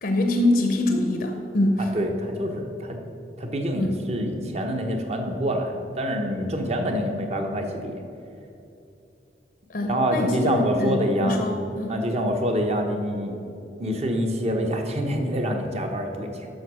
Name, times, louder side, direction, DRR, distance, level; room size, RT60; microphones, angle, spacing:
voice 1, 0.0-1.9 3.8-4.0 9.7-12.0, left 1 dB, 55° left, 4 dB, 0.7 m, -24 dB
voice 2, 1.9-3.0 3.4-8.0 9.8-11.4 11.9-13.4 13.8-16.5, equal, 40° right, 3 dB, 1.0 m, -26 dB
7.8 x 6.2 x 6.1 m, 2.8 s
head